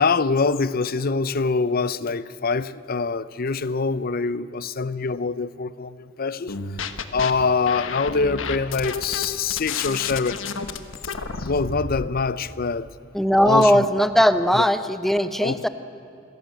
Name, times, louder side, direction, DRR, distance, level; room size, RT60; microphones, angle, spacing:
voice 1, 0.0-6.5 7.1-10.5 11.4-12.9 13.4-13.9 14.5-14.6 15.4-15.6, left 4 dB, 45° left, 16 dB, 0.6 m, -24 dB
sound 1, 6.5-7.3 7.7-12.1, left 5 dB, 70° left, 1.2 m, -31 dB
voice 2, 13.1-15.7, equal, ahead, 11 dB, 0.8 m, -19 dB
26.5 x 17.0 x 7.8 m, 2.9 s
head